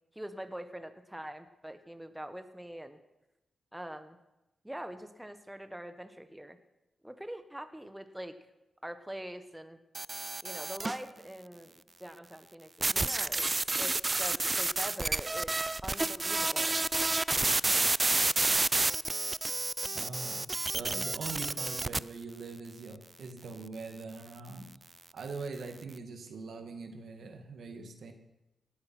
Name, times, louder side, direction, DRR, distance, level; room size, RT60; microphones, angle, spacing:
voice 1, 0.1-3.0 3.7-4.2 4.6-6.6 7.0-8.3 8.8-9.8 10.4-11.7 12.0-15.6 15.8-16.8, right 1 dB, 10° right, 9 dB, 1.2 m, -43 dB
sound 1, 9.9-11.0 12.8-22.0, right 2 dB, 30° right, 0.4 m, -30 dB
voice 2, 19.9-24.7 25.1-28.1, right 4 dB, 75° right, 6 dB, 1.8 m, -42 dB
18.5 x 8.4 x 6.0 m, 0.98 s
cardioid pair, 55°, 0 cm